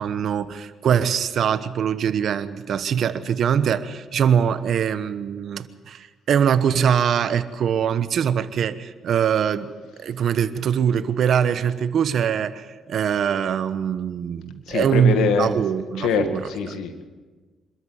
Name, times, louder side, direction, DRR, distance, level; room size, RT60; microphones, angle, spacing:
voice 1, 0.0-9.7 10.0-16.5, right 8 dB, 65° right, 13 dB, 1.1 m, -22 dB
voice 2, 14.7-15.5 16.0-17.1, left 6 dB, 85° left, 8 dB, 2.1 m, -24 dB
25.5 x 13.5 x 8.1 m, 1.3 s
cardioid pair, 90°, 0 cm